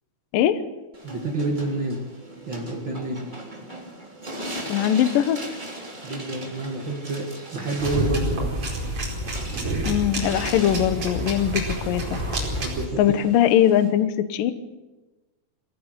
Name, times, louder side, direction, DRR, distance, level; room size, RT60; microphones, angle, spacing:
sound 1, 0.9-13.9, right 1 dB, 10° right, 2.7 m, -39 dB
voice 1, 1.0-2.0 2.5-3.2 6.0-8.5 12.6-13.1, right 2 dB, 60° right, 1 dB, 1.2 m, -28 dB
voice 2, 4.7-5.4 9.8-12.0 13.0-14.5, left 10 dB, 85° left, 10 dB, 1.9 m, -21 dB
sound 2, 7.8-12.8, right 1 dB, 30° right, 5.1 m, -28 dB
23.0 x 17.0 x 8.3 m, 1.1 s
omnidirectional pair, 5.9 m